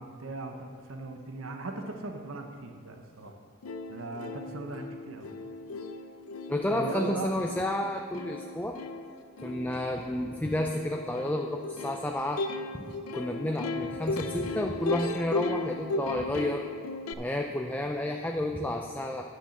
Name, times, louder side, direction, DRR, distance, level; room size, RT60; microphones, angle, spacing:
voice 1, 0.0-3.3 3.9-5.3 6.7-7.4, right 3 dB, 80° right, 4 dB, 0.9 m, -38 dB
Plucked string instrument, 3.3-3.4 3.6-17.1, left 2 dB, 85° left, 0.6 m, -36 dB
voice 2, 6.5-8.8 9.4-12.4 12.8-16.6 17.2-19.2, left 1 dB, 10° left, 2 dB, 0.4 m, -31 dB
9.8 x 6.2 x 6.5 m, 2.2 s
head